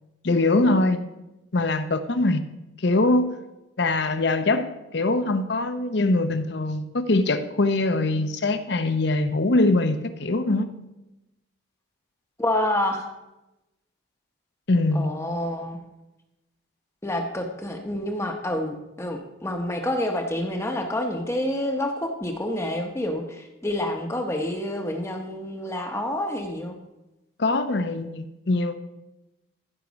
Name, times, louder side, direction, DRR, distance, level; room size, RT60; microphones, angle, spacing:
voice 1, 0.2-1.0 1.5-2.5 2.8-3.4 3.8-10.7 14.7-15.1 27.4-28.8, left 2 dB, 55° left, 10 dB, 0.7 m, -23 dB
voice 2, 12.4-13.1 14.9-15.8 17.0-26.7, left 1 dB, 15° left, 3 dB, 0.8 m, -28 dB
14.5 x 5.9 x 5.1 m, 0.99 s
head